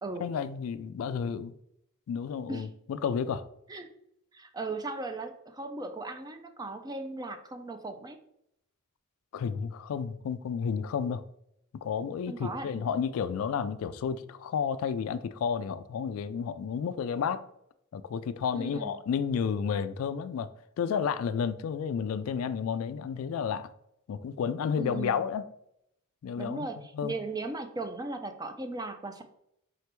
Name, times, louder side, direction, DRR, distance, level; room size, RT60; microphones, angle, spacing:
voice 1, 0.2-1.5 2.1-3.4 9.3-11.2 11.8-17.4 17.9-20.5 20.8-23.7 24.1-25.5 26.2-26.7 26.9-27.1, left 6 dB, 70° left, 0.3 m, -31 dB
voice 2, 4.3-8.2 12.3-12.7 18.5-18.9 24.8-25.2 26.4-29.2, right 3 dB, 20° right, 0.4 m, -37 dB
4.9 x 3.3 x 3.0 m
head